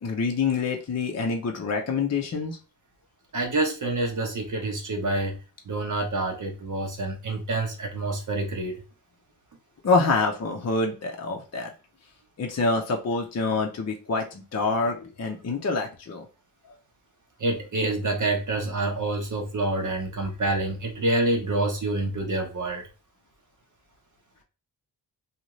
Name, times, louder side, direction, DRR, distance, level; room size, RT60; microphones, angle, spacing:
voice 1, 0.0-2.6 9.8-11.7 12.4-16.3, left 4 dB, 40° left, 0.6 m, -26 dB
voice 2, 3.3-5.4 5.7-8.8 17.4-22.9, right 2 dB, 50° right, 0.8 m, -27 dB
2.6 x 2.4 x 3.0 m
cardioid pair, 60°, 41 cm